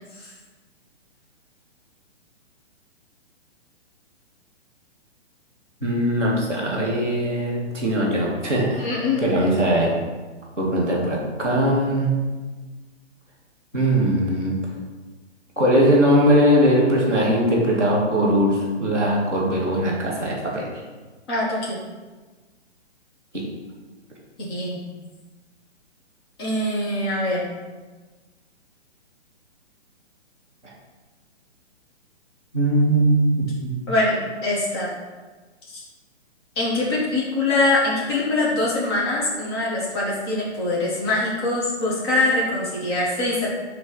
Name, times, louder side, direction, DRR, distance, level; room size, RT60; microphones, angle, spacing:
voice 1, 5.8-8.9 9.2-10.0 10.6-12.1 13.7-14.6 15.6-20.9 23.3-23.4 30.6-30.7 32.5-33.8, equal, 5° left, -11 dB, 0.6 m, -20 dB
voice 2, 8.8-9.2 21.3-21.8 24.4-24.8 26.4-27.5 33.9-34.1 34.4-34.9 36.5-43.5, left 2 dB, 20° left, -7 dB, 1.3 m, -23 dB
6.2 x 3.2 x 5.5 m, 1.3 s
hypercardioid pair, 175°, 35 cm